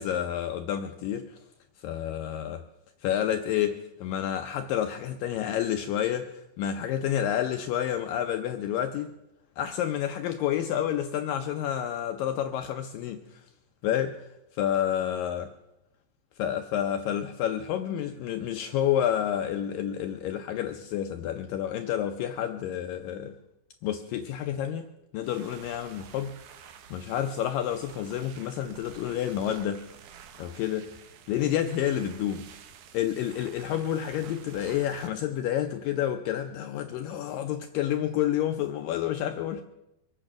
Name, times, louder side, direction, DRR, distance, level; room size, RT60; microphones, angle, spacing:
voice 1, 0.0-1.4 1.8-2.6 3.0-9.1 9.6-13.5 13.8-14.2 14.5-15.5 16.4-23.3 23.8-24.9 25.1-26.4 26.9-29.8 30.4-30.9 31.3-32.5 32.9-39.6, left 10 dB, 75° left, 2.1 m, -29 dB
sound 1, 25.2-35.1, right 8 dB, 75° right, 2.7 m, -50 dB
24.5 x 9.1 x 5.9 m
omnidirectional pair, 4.4 m